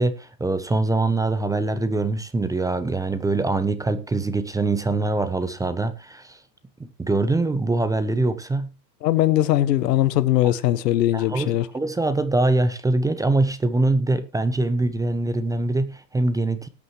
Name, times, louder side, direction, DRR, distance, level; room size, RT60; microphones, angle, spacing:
voice 1, 0.0-6.4 6.8-8.7 11.1-16.7, right 2 dB, 5° right, 0.7 m, -23 dB
voice 2, 9.0-11.7, left 14 dB, 80° left, 1.1 m, -20 dB
19.0 x 8.5 x 3.1 m
hypercardioid pair, 125°, 49 cm